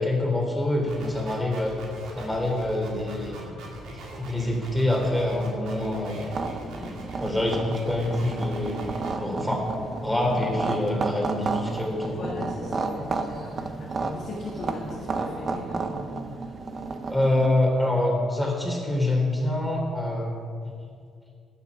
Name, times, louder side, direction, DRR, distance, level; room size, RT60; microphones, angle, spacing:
voice 1, 0.0-1.8 2.1-3.6 4.2-6.3 7.2-8.9 9.2-9.7 10.0-12.3 17.1-20.3, left 1 dB, 5° left, -1 dB, 3.2 m, -26 dB
sound 1, 0.9-9.1, right 2 dB, 80° right, 2.3 m, -41 dB
sound 2, 6.3-17.5, right 4 dB, 45° right, 0.8 m, -32 dB
voice 2, 6.6-7.0 12.2-16.3, left 2 dB, 60° left, -4 dB, 1.7 m, -38 dB
12.0 x 8.5 x 4.8 m, 2.2 s
supercardioid pair, 75°, 0 cm